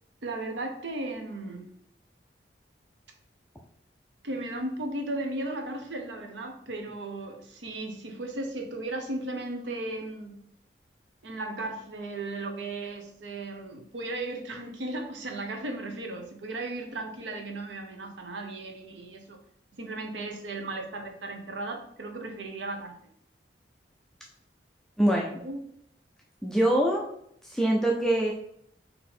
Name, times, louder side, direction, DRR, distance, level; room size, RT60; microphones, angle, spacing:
voice 1, 0.2-1.7 4.2-10.4 11.2-19.4 19.8-23.0 25.4-25.6, right 2 dB, 85° right, 4 dB, 0.8 m, -36 dB
voice 2, 25.0-25.4 26.4-27.0 27.4-28.3, right 1 dB, 5° left, -2 dB, 0.4 m, -24 dB
4.0 x 2.8 x 4.2 m, 0.72 s
head